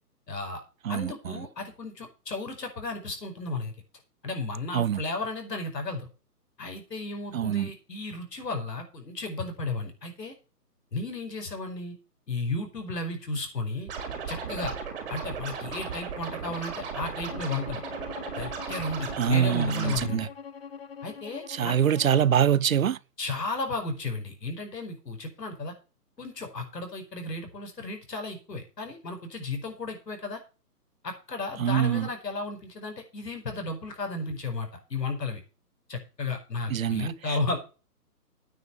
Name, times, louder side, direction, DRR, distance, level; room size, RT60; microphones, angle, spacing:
voice 1, 0.3-0.6 0.9-3.7 4.2-6.1 6.6-10.3 10.9-12.0 12.3-13.9 14.3-14.7 15.1-17.8 18.4-20.3 21.0-21.8 23.2-25.7 26.2-30.4 31.0-35.4 35.9-37.6, left 3 dB, 80° left, 5.1 m, -34 dB
voice 2, 0.8-1.4 4.7-5.0 7.3-7.7 19.2-20.3 21.5-23.0 31.6-32.1 36.7-37.1, right 9 dB, 55° right, 0.5 m, -24 dB
Scratching (performance technique), 13.9-20.0, right 6 dB, 35° right, 4.1 m, -36 dB
Bowed string instrument, 17.3-22.4, left 7 dB, 40° left, 0.6 m, -43 dB
9.3 x 6.7 x 8.3 m
hypercardioid pair, 165°, 48 cm